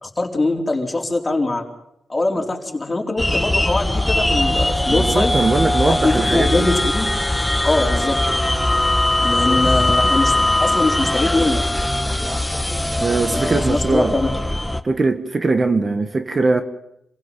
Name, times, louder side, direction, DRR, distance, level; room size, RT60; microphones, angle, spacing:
voice 1, 0.0-1.6 2.1-5.3 5.9-7.1 7.6-8.2 9.2-11.6 13.3-14.3, left 2 dB, 25° left, 4.3 m, -22 dB
sound 1, 3.2-14.8, left 1 dB, 10° left, 1.4 m, -20 dB
voice 2, 4.9-6.7 11.9-12.0 13.0-14.2 14.8-16.6, right 3 dB, 35° right, 1.5 m, -20 dB
27.5 x 16.0 x 7.7 m
cardioid pair, 75°, 0 cm